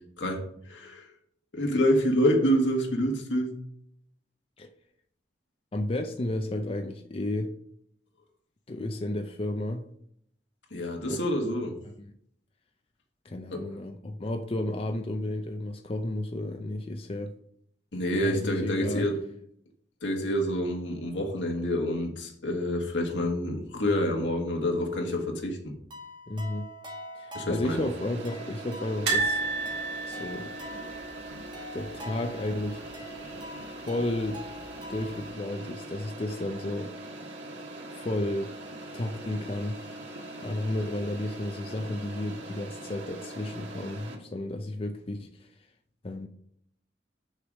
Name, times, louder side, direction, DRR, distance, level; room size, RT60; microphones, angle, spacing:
voice 1, 0.2-1.1 1.5-3.5 10.7-11.7 13.5-13.6 17.9-19.1 20.0-25.6 27.3-27.8, equal, 80° left, 1.7 m, -27 dB
voice 2, 5.7-7.5 8.7-9.9 11.1-11.2 12.0-12.1 13.2-17.3 18.2-19.1 26.3-26.7 27.2-29.4 30.1-30.5 31.7-32.8 33.9-34.4 34.9-36.9 37.9-38.5 38.9-39.8 40.4-45.5 46.0-46.3, left 1 dB, 30° left, 0.5 m, -32 dB
sound 1, 25.9-35.3, equal, 25° right, 1.6 m, -45 dB
sound 2, 27.6-44.2, right 1 dB, 90° right, 1.6 m, -42 dB
sound 3, 29.1-32.1 32.4-32.6 32.8-32.9 34.2-34.7 35.2-35.3, right 3 dB, 65° right, 2.6 m, -31 dB
6.5 x 4.8 x 6.2 m
head